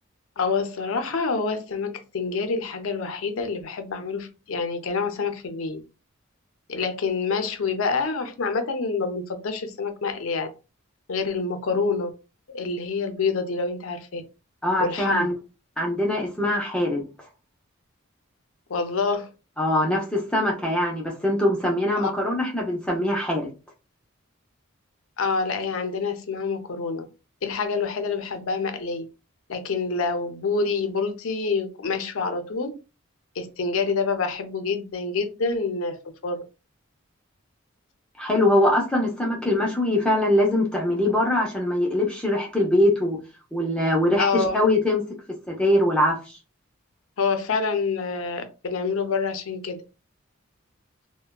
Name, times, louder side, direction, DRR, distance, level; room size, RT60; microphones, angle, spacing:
voice 1, 0.4-5.8 6.7-10.5 11.1-12.1 12.5-14.2 14.8-15.3 18.7-19.3 22.0-22.1 25.2-27.1 27.4-29.1 29.5-32.7 33.4-36.0 36.2-36.4 44.2-44.6 47.2-49.8, left 4 dB, 75° left, 0.5 m, -27 dB
voice 2, 14.6-15.3 15.8-17.1 19.6-23.5 38.2-43.2 43.5-45.0 45.5-46.3, left 1 dB, 5° left, 0.5 m, -22 dB
3.3 x 2.1 x 2.2 m
head